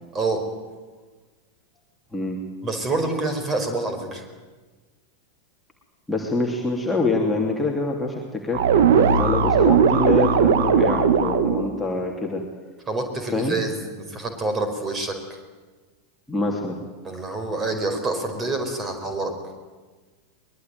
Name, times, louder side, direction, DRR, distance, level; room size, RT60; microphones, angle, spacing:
voice 1, 2.6-4.2 12.9-15.1 17.0-19.3, right 2 dB, 20° right, 6 dB, 4.9 m, -27 dB
voice 2, 6.1-8.6 9.0-12.4 13.3-13.6 16.3-16.8 17.3-17.4, left 3 dB, 5° left, -2 dB, 3.0 m, -25 dB
sound 1, 8.5-11.7, right 6 dB, 55° right, 2.0 m, -18 dB
23.0 x 21.0 x 9.4 m, 1.3 s
figure-of-eight pair, 90°, 0 cm